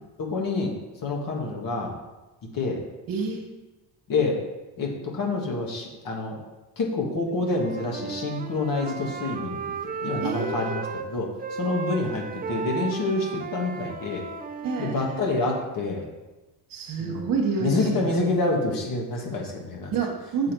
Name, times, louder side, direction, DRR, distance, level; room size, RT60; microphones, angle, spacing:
voice 1, 0.2-0.7 1.0-1.9 2.5-2.8 4.1-4.4 4.8-6.4 6.8-9.6 10.0-10.8 11.1-11.3 11.6-14.3 14.8-16.1 17.0-17.2 17.6-19.9 20.4-20.5, left 3 dB, 50° left, 0 dB, 1.6 m, -27 dB
voice 2, 3.1-3.5 10.2-10.8 14.6-15.1 15.4-15.6 16.7-18.1 19.9-20.5, right 5 dB, 50° right, 3 dB, 1.5 m, -28 dB
Wind instrument woodwind instrument, 7.5-11.1 11.4-15.7, right 5 dB, 20° right, 0.5 m, -35 dB
7.3 x 6.1 x 4.6 m, 1.1 s
cardioid pair, 130°, 44 cm